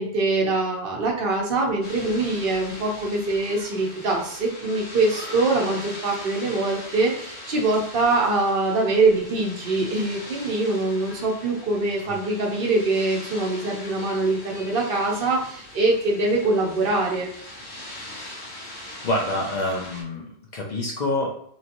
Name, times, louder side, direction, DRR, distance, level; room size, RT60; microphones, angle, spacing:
voice 1, 0.0-17.3, right 2 dB, 60° right, -1 dB, 0.8 m, -23 dB
sound 1, 1.8-20.0, left 1 dB, 80° left, 1.2 m, -40 dB
voice 2, 19.0-21.3, left 1 dB, 50° left, -1 dB, 0.6 m, -27 dB
3.1 x 2.6 x 2.5 m, 0.66 s
omnidirectional pair, 1.1 m